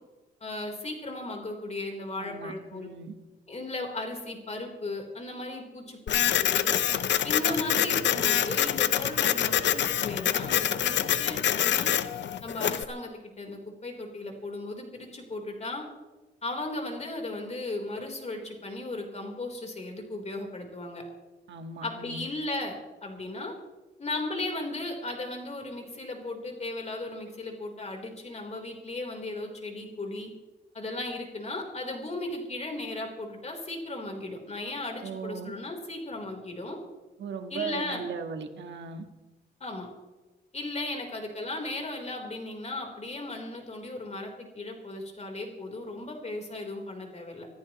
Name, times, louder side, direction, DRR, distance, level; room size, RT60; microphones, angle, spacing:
voice 1, 0.4-2.9 3.5-6.7 7.2-11.9 12.4-15.8 16.4-21.0 21.8-22.8 23.0-23.5 24.0-30.3 30.7-36.8 37.5-38.0 39.6-39.9 40.5-47.5, left 2 dB, 35° left, 2 dB, 4.0 m, -36 dB
voice 2, 2.2-3.1 21.5-22.2 35.0-35.5 37.2-39.0, right 5 dB, 80° right, 6 dB, 1.7 m, -37 dB
Printer, 6.1-12.8, left 10 dB, 80° left, 0.7 m, -26 dB
26.0 x 14.0 x 3.1 m, 1.2 s
cardioid pair, 85°, 18 cm